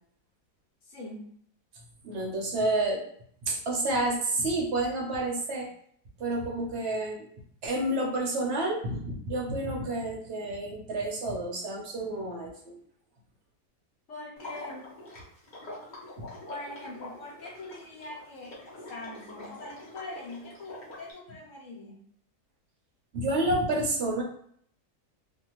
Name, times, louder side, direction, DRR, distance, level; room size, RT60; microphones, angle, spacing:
voice 1, 0.8-1.4 14.1-14.9 16.5-22.1, left 2 dB, 60° left, -3 dB, 1.0 m, -43 dB
voice 2, 2.0-3.0 3.4-5.7 6.2-7.3 7.6-12.8 23.1-24.2, right 2 dB, 55° right, -2 dB, 0.8 m, -29 dB
Water / Liquid, 14.4-21.1, left 1 dB, 40° left, 0.8 m, -45 dB
2.6 x 2.4 x 3.0 m, 0.63 s
omnidirectional pair, 1.7 m